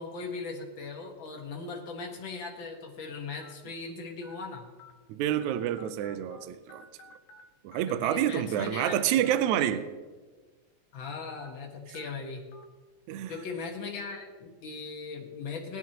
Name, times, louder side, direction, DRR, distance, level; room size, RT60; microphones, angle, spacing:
voice 1, 0.0-4.7 7.9-9.2 9.5-9.7 10.9-12.5 13.3-15.8, left 4 dB, 50° left, 1 dB, 1.5 m, -39 dB
sound 1, 1.3-1.5 2.2-2.3 3.4-3.5 4.2-4.3 4.8-4.9 5.3-6.4 6.7-7.4 7.7-7.8 9.1-9.4 9.8-9.9 11.3-11.5 11.9-12.1 12.5-12.6 13.3-13.4, left 4 dB, 75° left, 2.4 m, -52 dB
voice 2, 5.1-6.8 7.6-9.8 13.1-13.3, right 11 dB, 80° right, 11 dB, 1.8 m, -28 dB
20.5 x 9.5 x 2.9 m, 1.3 s
omnidirectional pair, 3.9 m